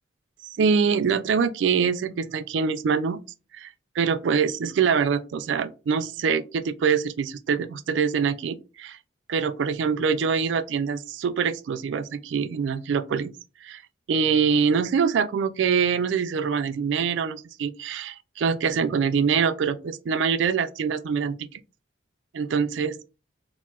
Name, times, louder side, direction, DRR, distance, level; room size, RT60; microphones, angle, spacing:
voice 1, 0.6-3.2 3.5-9.0 9.3-13.3 13.6-13.8 14.1-21.6 22.3-23.1, right 6 dB, 80° right, 0.3 m, -24 dB
4.4 x 2.1 x 2.3 m
head